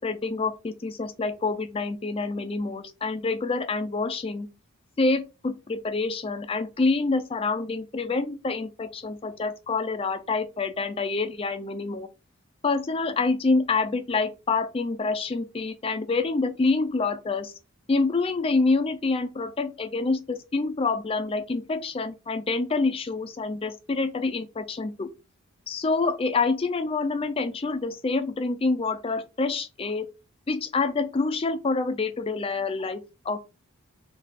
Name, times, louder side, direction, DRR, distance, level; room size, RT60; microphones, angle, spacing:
voice 1, 0.0-4.5 5.0-12.1 12.6-17.5 17.9-25.1 25.7-30.1 30.5-33.4, left 3 dB, 25° left, 0.3 m, -27 dB
3.3 x 2.3 x 4.0 m
head